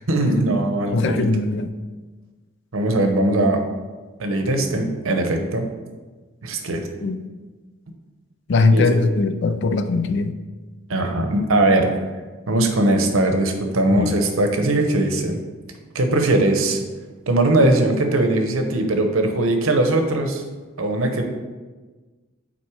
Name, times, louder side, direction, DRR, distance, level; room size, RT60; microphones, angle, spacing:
voice 1, 0.1-1.3 2.7-3.6 4.2-5.6 6.4-6.9 8.6-9.0 10.9-11.9 12.5-15.4 15.9-16.8 17.3-20.4 20.8-21.4, right 2 dB, 80° right, 5 dB, 0.9 m, -20 dB
voice 2, 0.9-1.7 7.0-7.2 8.5-10.3 13.9-14.2, left 3 dB, 55° left, 10 dB, 0.4 m, -20 dB
6.0 x 4.2 x 4.8 m, 1.3 s
head